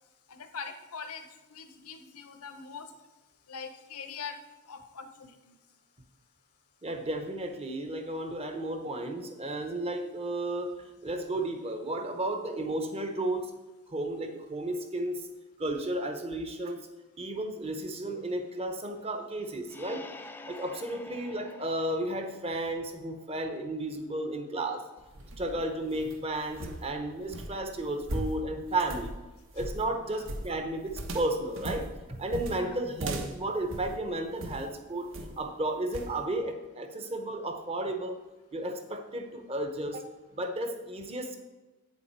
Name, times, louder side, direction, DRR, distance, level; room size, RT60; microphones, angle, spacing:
voice 1, 0.3-1.2 1.5-2.9 3.5-4.4 4.7-5.6 30.1-30.3 32.5-32.8, left 6 dB, 90° left, 8 dB, 0.9 m, -42 dB
voice 2, 6.8-10.8 11.0-13.5 13.9-15.3 15.6-16.8 17.2-20.1 20.4-24.8 25.4-29.1 29.5-35.1 35.4-38.2 38.5-40.0 40.4-41.4, right 1 dB, 25° right, 6 dB, 0.9 m, -33 dB
sound 1, 19.7-23.3, left 2 dB, 10° left, 0.4 m, -48 dB
sound 2, 25.0-34.7 35.1-35.5 35.9-36.2, right 1 dB, 60° right, 1.1 m, -39 dB
8.7 x 7.0 x 4.6 m, 1.1 s
head